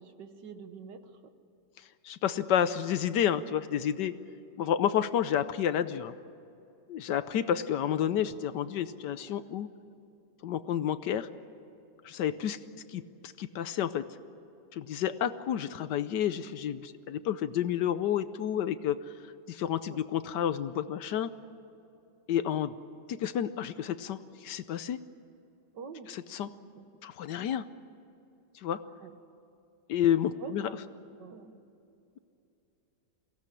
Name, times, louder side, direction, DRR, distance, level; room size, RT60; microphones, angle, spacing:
voice 1, 0.0-1.3 19.9-20.0 25.7-26.1 26.6-26.8 29.0-29.1 30.4-31.6, right 5 dB, 65° right, 8 dB, 1.8 m, -46 dB
voice 2, 2.0-4.1 4.6-6.1 6.9-9.7 10.4-11.3 12.0-12.6 12.9-14.1 14.7-19.0 19.5-21.3 22.3-22.7 23.1-25.0 26.1-26.5 27.0-27.7 28.5-28.8 29.9-30.7, left 10 dB, 70° left, 13 dB, 1.3 m, -30 dB
23.0 x 17.0 x 9.8 m, 2.7 s
omnidirectional pair, 2.1 m